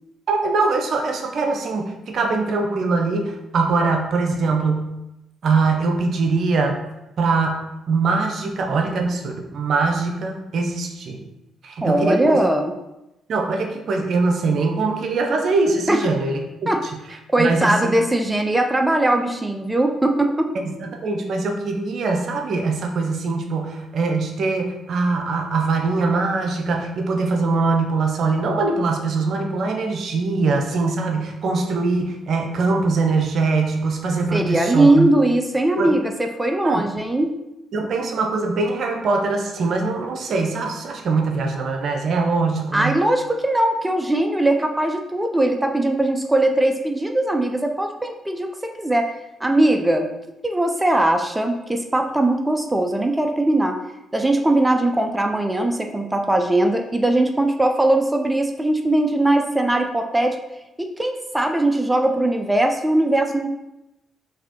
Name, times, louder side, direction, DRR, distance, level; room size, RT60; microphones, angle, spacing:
voice 1, 0.3-4.9 5.4-6.8 7.2-11.3 11.6-12.4 13.3-16.9 17.4-17.9 20.5-35.1 35.8-35.9 36.6-36.9 37.7-43.0, right 3 dB, 65° right, 3 dB, 0.5 m, -22 dB
voice 2, 11.8-12.7 15.9-16.1 16.7-16.8 17.1-20.5 34.3-37.3 42.7-49.1 49.4-50.1 50.4-53.8 54.1-60.4 60.8-63.5, right 1 dB, 15° right, 5 dB, 0.4 m, -20 dB
3.9 x 2.7 x 2.9 m, 0.93 s
hypercardioid pair, 50°, 0 cm